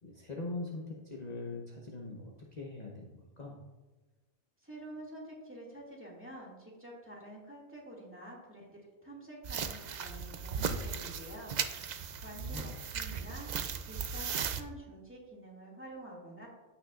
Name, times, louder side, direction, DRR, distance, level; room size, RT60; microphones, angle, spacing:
voice 1, 0.0-3.6 12.4-12.7, left 2 dB, 35° left, -1 dB, 0.9 m, -42 dB
voice 2, 4.6-11.5 12.2-13.5 13.9-16.5, right 1 dB, 10° right, -4 dB, 2.0 m, -48 dB
sound 1, 9.4-14.6, right 6 dB, 75° right, 0.4 m, -37 dB
14.5 x 5.9 x 2.4 m, 1.2 s
omnidirectional pair, 1.4 m